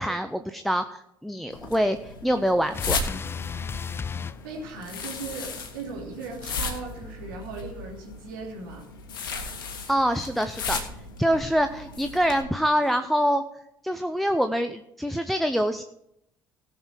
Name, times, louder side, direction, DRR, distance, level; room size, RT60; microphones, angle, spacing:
voice 1, 0.0-3.0 9.9-10.8 11.2-13.4 13.8-15.8, equal, ahead, 8 dB, 0.7 m, -25 dB
sound 1, 1.5-12.4, left 4 dB, 70° left, 1.5 m, -36 dB
sound 2, 2.7-5.2 6.6-7.9, left 6 dB, 20° left, 0.3 m, -36 dB
sound 3, 3.2-4.1 5.9-6.3 7.3-7.4 7.9-8.0 10.1-10.5 12.4-12.5 12.8-13.3, right 2 dB, 45° left, 3.6 m, -53 dB
voice 2, 4.4-8.9, right 3 dB, 70° right, -1 dB, 2.9 m, -38 dB
17.5 x 6.7 x 4.6 m, 0.79 s
figure-of-eight pair, 50°, 11 cm